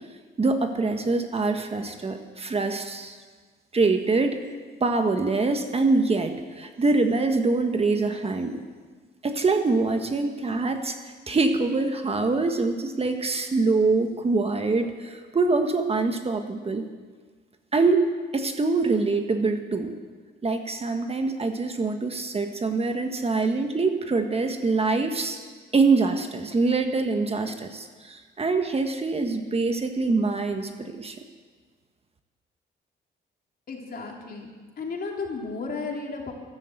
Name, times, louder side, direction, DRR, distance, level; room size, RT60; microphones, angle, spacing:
voice 1, 0.4-3.2 3.7-4.4 4.8-8.6 9.2-16.9 17.7-19.9 20.4-25.4 25.7-31.1, right 3 dB, 30° right, 6 dB, 1.4 m, -24 dB
voice 2, 33.7-36.3, left 4 dB, 50° left, 0 dB, 3.2 m, -34 dB
13.0 x 12.0 x 7.9 m, 1.5 s
cardioid pair, 90°, 20 cm